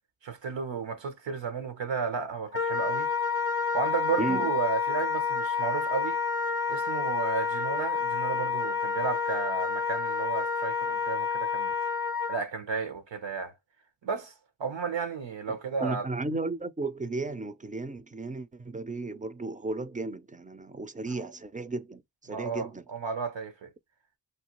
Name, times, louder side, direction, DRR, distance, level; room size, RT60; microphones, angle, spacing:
voice 1, 0.2-3.1 3.7-6.2 6.7-11.7 12.3-13.5 14.0-14.3 14.6-16.1 21.0-21.3 22.3-23.7, right 5 dB, 90° right, 0.8 m, -33 dB
Wind instrument woodwind instrument, 2.5-12.4, left 5 dB, 30° left, 0.6 m, -29 dB
voice 2, 15.8-22.8, right 3 dB, 20° right, 0.4 m, -34 dB
3.1 x 2.3 x 2.9 m
cardioid pair, 45°, 43 cm